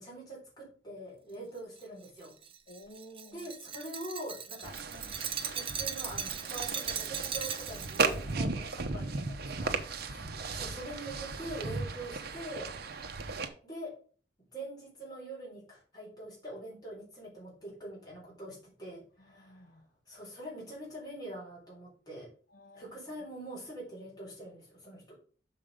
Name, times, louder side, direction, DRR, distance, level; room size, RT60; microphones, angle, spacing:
voice 1, 0.0-2.3 3.3-5.1 5.5-9.8 10.1-12.7 13.6-13.9 14.5-19.6 20.1-22.3 22.7-25.1, right 1 dB, 20° left, -6 dB, 4.0 m, -44 dB
Glass, 1.8-8.1, right 7 dB, 30° right, 0.7 m, -38 dB
voice 2, 2.7-3.5 9.6-9.8 10.1-10.4 19.2-19.9 22.5-23.0, equal, 55° left, 2 dB, 0.9 m, -53 dB
sound 1, 4.6-13.5, right 4 dB, 55° right, 0.8 m, -36 dB
6.4 x 5.5 x 5.0 m, 0.41 s
head